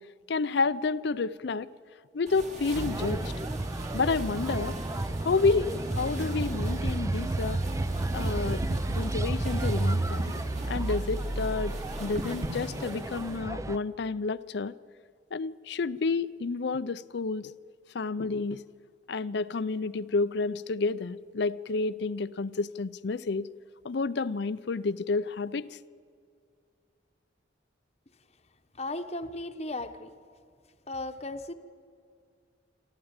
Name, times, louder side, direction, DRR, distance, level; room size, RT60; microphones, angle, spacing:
voice 1, 0.3-1.7 2.1-3.3 3.9-4.8 5.2-7.6 8.1-8.6 8.9-10.3 10.7-14.7 15.3-17.5 17.9-18.6 19.1-23.5 23.8-25.8, left 4 dB, 60° left, 0.5 m, -30 dB
sound 1, 2.3-13.4, right 1 dB, 40° right, 2.3 m, -40 dB
sound 2, 2.7-13.8, right 2 dB, 15° right, 0.5 m, -31 dB
voice 2, 28.8-30.1 30.9-31.5, left 2 dB, 35° left, 1.0 m, -36 dB
27.5 x 13.0 x 8.8 m
head